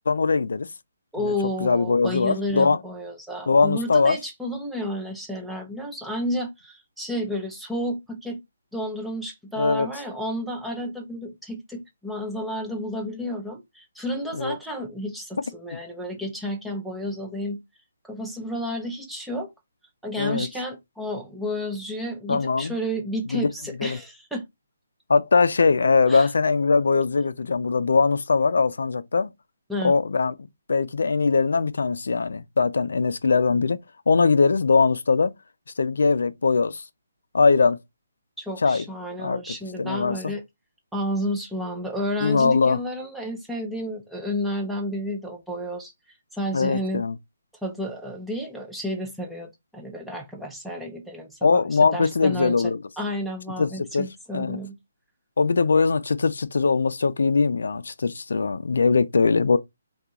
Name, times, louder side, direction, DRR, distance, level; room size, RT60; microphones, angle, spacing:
voice 1, 0.1-0.7 1.2-1.3 1.6-2.8 3.5-4.2 9.6-9.9 14.3-14.6 20.2-20.5 22.3-22.7 23.3-23.4 23.8-24.0 25.1-29.3 29.8-30.3 30.7-33.8 34.1-35.3 35.8-36.8 37.3-37.8 38.6-38.8 39.2-40.3 42.2-42.8 46.5-47.1 51.4-52.8 53.6-54.1 54.3-54.6 55.4-59.6, left 4 dB, 75° left, 0.4 m, -21 dB
voice 2, 1.1-8.4 8.7-17.6 18.0-19.5 20.0-24.4 26.1-26.3 29.7-29.9 38.4-40.4 40.9-45.9 46.3-47.0 47.6-51.6 51.9-52.6 53.0-54.8, equal, ahead, 0.4 m, -31 dB
3.6 x 2.3 x 2.9 m
hypercardioid pair, 175°, 0 cm